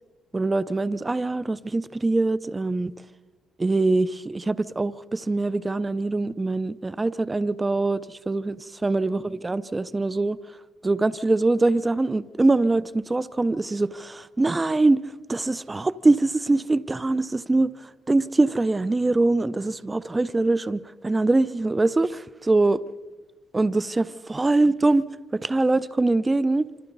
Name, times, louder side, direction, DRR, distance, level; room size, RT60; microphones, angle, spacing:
voice 1, 0.3-2.9 3.6-8.6 8.8-10.4 10.8-15.0 15.3-17.7 18.1-22.8 23.5-25.0 25.3-26.6, right 2 dB, 20° right, 0.5 m, -23 dB
26.5 x 26.0 x 4.0 m
cardioid pair, 90°, 0 cm